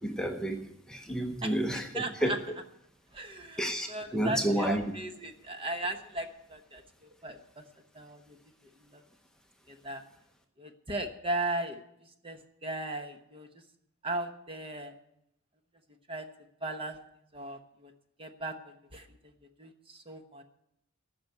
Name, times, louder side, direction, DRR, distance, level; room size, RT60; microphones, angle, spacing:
voice 1, 0.0-2.5 3.6-4.9, right 1 dB, 5° left, 2 dB, 0.8 m, -31 dB
voice 2, 1.4-2.4 3.1-3.6 3.9-6.8 7.2-7.6 7.9-8.4 8.9-9.0 9.7-10.0 10.6-11.8 12.2-13.5 14.0-14.9 16.1-16.3 16.6-17.0 17.3-17.9 18.2-19.1 19.6-20.4, right 2 dB, 25° right, 6 dB, 1.0 m, -37 dB
15.0 x 6.0 x 9.1 m, 0.80 s
head